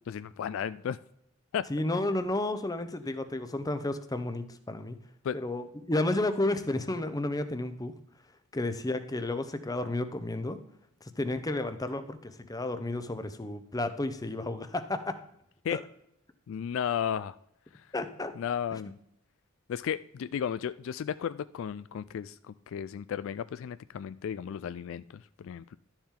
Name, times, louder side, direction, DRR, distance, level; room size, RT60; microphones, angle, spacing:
voice 1, 0.1-1.0 1.5-1.6 5.2-5.4 15.6-15.8 16.5-17.4 17.7-17.9 18.4-18.9 19.7-25.8, left 8 dB, 65° left, 15 dB, 0.3 m, -34 dB
voice 2, 1.7-5.0 5.3-7.9 8.5-10.6 11.0-15.2 15.7-15.8 17.9-18.3, left 2 dB, 15° left, 10 dB, 0.7 m, -32 dB
11.5 x 7.2 x 3.7 m, 0.75 s
head